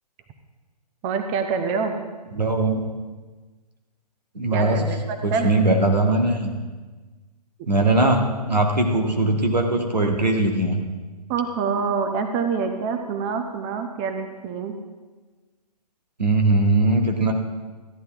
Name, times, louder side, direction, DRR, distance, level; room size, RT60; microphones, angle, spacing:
voice 1, 1.0-2.0 4.5-5.6 8.0-8.1 11.3-14.7, right 5 dB, 20° right, 6 dB, 0.7 m, -26 dB
voice 2, 2.3-2.7 4.3-4.8 5.2-6.5 7.7-10.8 16.2-17.3, right 2 dB, 85° right, 2 dB, 1.6 m, -20 dB
14.0 x 10.5 x 3.5 m, 1.3 s
figure-of-eight pair, 130°, 21 cm